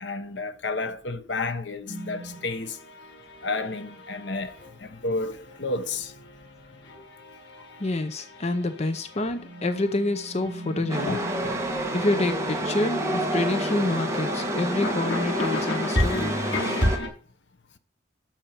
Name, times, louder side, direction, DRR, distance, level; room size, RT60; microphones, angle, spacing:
voice 1, 0.0-2.8 3.4-4.5 4.8-6.1 11.1-11.5 16.9-17.0, left 3 dB, 70° left, 1.0 m, -31 dB
sound 1, 1.8-17.1, left 1 dB, 85° left, 5.6 m, -33 dB
voice 2, 7.8-11.2 11.9-16.4, left 2 dB, 35° left, 0.7 m, -27 dB
Chatter / Subway metro underground, 10.9-17.0, right 1 dB, 15° right, 1.6 m, -29 dB
12.0 x 4.6 x 5.9 m
head